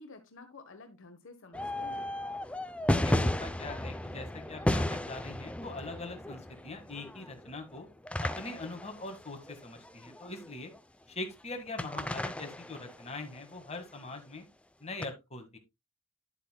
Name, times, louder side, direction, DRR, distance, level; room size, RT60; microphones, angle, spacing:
voice 1, 0.0-2.1, left 3 dB, 65° left, 6 dB, 1.2 m, -51 dB
sound 1, 1.5-10.8 11.8-13.7 15.0-15.1, left 1 dB, 5° left, 0.5 m, -34 dB
voice 2, 2.9-7.9 8.2-10.7 11.1-14.5 14.8-15.6, left 2 dB, 30° left, 4 dB, 1.8 m, -42 dB
10.5 x 8.2 x 2.2 m, 0.22 s
head